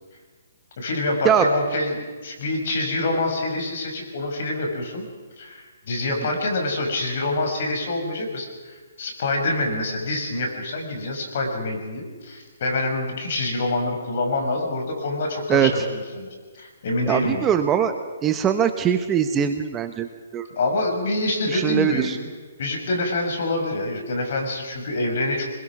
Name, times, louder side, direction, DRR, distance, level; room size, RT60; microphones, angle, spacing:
voice 1, 0.8-5.1 5.4-17.4 20.5-22.3 22.6-25.4, left 2 dB, 50° left, 2 dB, 5.7 m, -26 dB
voice 2, 15.5-15.8 17.1-17.9 18.2-20.5 21.5-22.2, right 9 dB, 15° right, 8 dB, 1.0 m, -22 dB
26.5 x 21.5 x 6.0 m, 1.4 s
hypercardioid pair, 160°, 0 cm